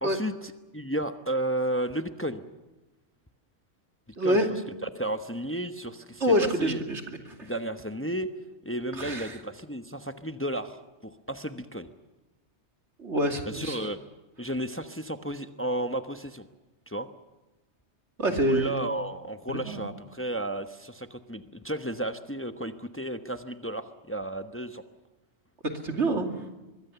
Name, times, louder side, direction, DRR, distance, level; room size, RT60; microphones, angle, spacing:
voice 1, 0.0-2.4 4.2-4.4 4.8-6.2 6.6-6.8 7.4-8.3 8.6-11.9 13.5-14.0 14.4-16.5 16.9-17.1 18.5-24.8, right 1 dB, 10° left, 8 dB, 0.9 m, -33 dB
voice 2, 4.2-4.5 6.2-7.0 7.4-7.5 9.0-9.3 13.0-13.8 18.2-18.8 19.5-19.8 25.6-26.3, right 1 dB, 85° right, 4 dB, 2.8 m, -26 dB
24.5 x 22.0 x 6.9 m, 1.1 s
omnidirectional pair, 1.2 m